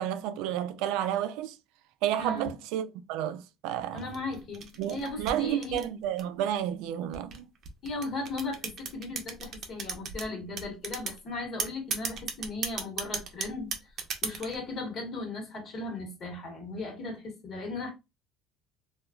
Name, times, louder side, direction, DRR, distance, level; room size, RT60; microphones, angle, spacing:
voice 1, 0.0-1.6 2.0-4.1 4.8-7.5, right 11 dB, 85° right, 0.3 m, -31 dB
voice 2, 2.2-2.5 3.9-5.9 7.8-13.7 14.2-17.9, left 2 dB, 40° left, 1.2 m, -37 dB
sound 1, 4.0-6.4 7.1-10.3 10.6-11.2 11.6-14.6, right 6 dB, 45° right, 0.6 m, -34 dB
3.0 x 2.3 x 2.2 m
cardioid pair, 140°, 0 cm